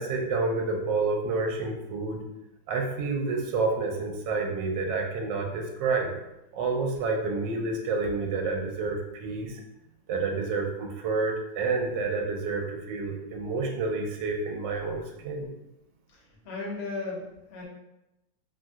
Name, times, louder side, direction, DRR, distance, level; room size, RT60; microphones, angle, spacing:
voice 1, 0.0-2.2 2.7-6.1 6.5-9.6 10.1-15.5, right 3 dB, 75° right, 1 dB, 1.2 m, -29 dB
voice 2, 16.1-17.6, left 3 dB, 55° left, -4 dB, 0.7 m, -36 dB
3.2 x 2.6 x 2.3 m, 0.90 s
omnidirectional pair, 2.1 m